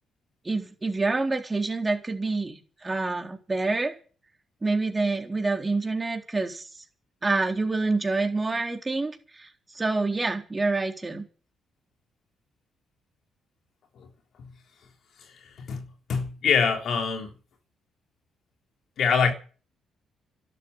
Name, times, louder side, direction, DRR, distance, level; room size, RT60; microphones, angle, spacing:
voice 1, 0.4-4.0 4.6-6.7 7.2-11.3, right 3 dB, 20° right, 4.0 m, -27 dB
voice 2, 16.1-17.3 19.0-19.3, left 6 dB, 65° left, 3.6 m, -24 dB
12.5 x 12.0 x 9.4 m
cardioid pair, 90°, 0 cm